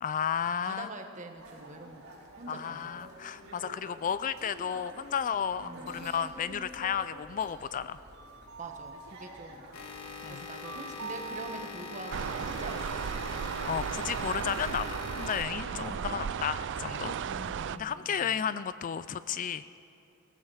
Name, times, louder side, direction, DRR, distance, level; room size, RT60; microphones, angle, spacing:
voice 1, 0.0-0.9 2.5-8.0 10.2-10.5 13.7-17.2 17.7-19.6, left 8 dB, 40° left, 14 dB, 0.4 m, -33 dB
voice 2, 0.6-2.1 2.4-3.0 5.6-6.1 8.6-9.9 10.3-13.4 15.7-16.2 17.2-18.4, right 2 dB, 35° right, 5 dB, 1.3 m, -45 dB
sound 1, 1.4-12.9, right 2 dB, 75° right, 4.3 m, -47 dB
sound 2, 9.7-15.9, left 4 dB, 70° left, 1.5 m, -43 dB
sound 3, 12.1-17.8, right 7 dB, 60° right, 0.4 m, -35 dB
18.0 x 15.0 x 4.9 m, 3.0 s
head